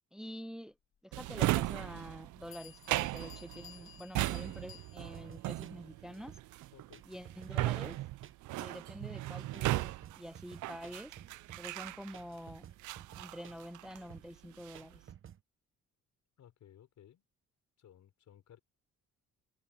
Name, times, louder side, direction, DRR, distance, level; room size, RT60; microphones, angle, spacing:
voice 1, 0.1-0.8 1.0-6.4 7.0-8.0 8.5-11.2 11.6-12.7 13.1-15.1, equal, ahead, 0.9 m, -47 dB
Drawer open or close, 1.1-12.4 12.8-14.1 14.4-15.0, right 17 dB, 80° right, 0.5 m, -37 dB
Bell, 2.1-2.2 2.5-5.3, left 10 dB, 45° left, 0.8 m, -55 dB
sound 1, 5.1-15.4, right 9 dB, 45° right, 0.8 m, -54 dB
voice 2, 6.7-7.0 16.4-17.2 17.8-18.6, left 10 dB, 70° left, 4.6 m, -59 dB
cardioid pair, 90°, 30 cm